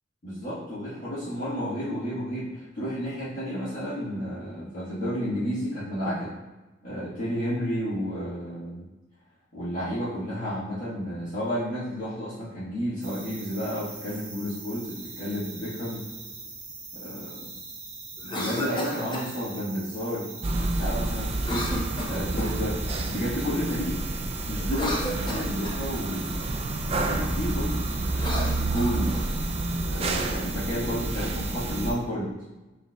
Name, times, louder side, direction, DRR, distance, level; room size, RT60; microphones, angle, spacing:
voice 1, 0.2-6.3 6.8-8.9 9.5-16.0 17.0-17.5 18.2-24.0 24.5-26.4 26.8-29.1 29.8-32.3, equal, 45° left, -10 dB, 1.4 m, -31 dB
sound 1, 13.0-31.9, right 3 dB, 50° right, 1.4 m, -41 dB
Cough, 18.2-19.3 21.4-22.6 24.6-25.8 28.1-29.3, left 1 dB, 25° left, 0.6 m, -33 dB
sound 2, 20.4-31.9, right 2 dB, 30° right, 0.3 m, -29 dB
6.5 x 3.2 x 2.3 m, 1.1 s
head